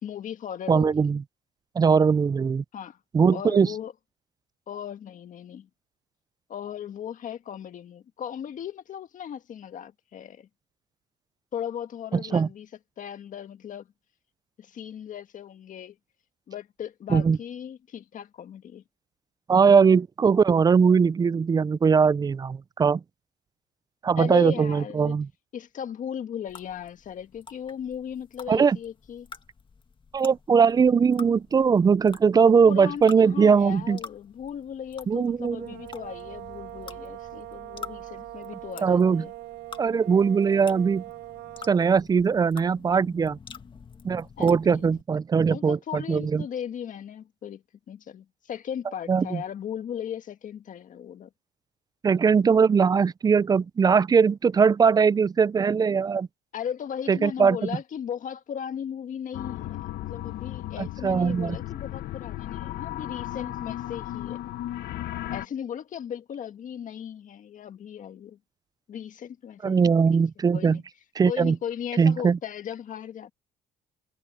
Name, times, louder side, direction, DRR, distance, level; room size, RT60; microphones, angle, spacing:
voice 1, 0.0-1.0 2.7-3.0 3.3-3.9 4.7-5.7 6.5-10.5 11.5-12.7 13.0-13.9 14.6-16.0 16.5-18.8 24.2-25.2 25.5-29.3 32.7-39.3 44.4-44.9 45.5-51.3 56.5-64.4 65.3-68.4 68.9-70.2 70.5-70.8 71.2-73.3, left 9 dB, 50° left, 1.7 m, -37 dB
voice 2, 0.7-1.2 1.8-2.6 3.1-3.7 12.3-12.5 17.1-17.4 19.5-23.0 24.0-25.3 28.5-28.8 30.1-34.0 35.1-35.7 38.8-39.3 39.8-41.0 41.7-43.4 44.0-46.4 49.1-49.4 52.0-56.3 57.1-57.7 60.8-61.6 69.6-70.8 71.2-71.6 72.0-72.4, right 6 dB, 25° right, 0.4 m, -20 dB
sound 1, 26.5-45.0, left 5 dB, 30° left, 1.9 m, -48 dB
sound 2, 35.5-42.1, right 19 dB, 80° right, 0.7 m, -42 dB
sound 3, 59.3-65.5, left 14 dB, 70° left, 1.3 m, -35 dB
cardioid pair, 110°, 17 cm